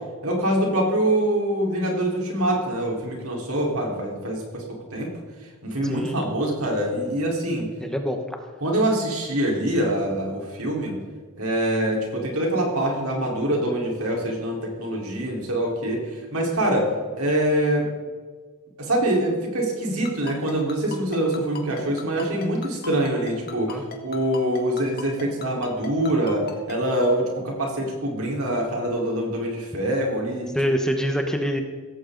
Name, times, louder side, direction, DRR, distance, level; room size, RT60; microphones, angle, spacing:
voice 1, 0.2-5.1 5.6-7.7 8.6-11.0 11.4-16.0 16.3-17.9 18.8-30.5, right 1 dB, 70° right, -1 dB, 4.2 m, -24 dB
voice 2, 5.8-6.2 7.8-8.2 23.7-23.8 30.5-31.6, equal, 5° left, 4 dB, 1.0 m, -25 dB
Ringtone, 20.1-26.8, left 6 dB, 45° left, 1.9 m, -37 dB
16.5 x 15.5 x 4.0 m, 1.5 s
head